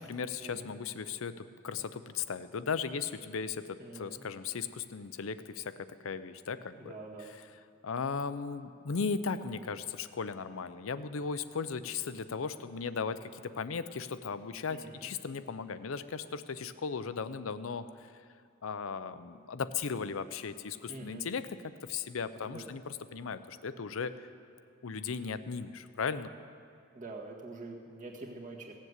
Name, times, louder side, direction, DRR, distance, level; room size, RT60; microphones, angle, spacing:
voice 1, 0.0-6.9 7.8-17.9 18.1-18.2 18.6-21.4 21.8-24.1 24.8-26.3, left 5 dB, 75° left, 13 dB, 0.6 m, -37 dB
voice 2, 3.8-4.2 6.8-7.3 14.7-15.1 20.9-21.2 22.4-22.7 26.9-28.7, right 2 dB, 40° right, -1 dB, 1.8 m, -45 dB
17.0 x 7.4 x 8.1 m, 2.3 s
head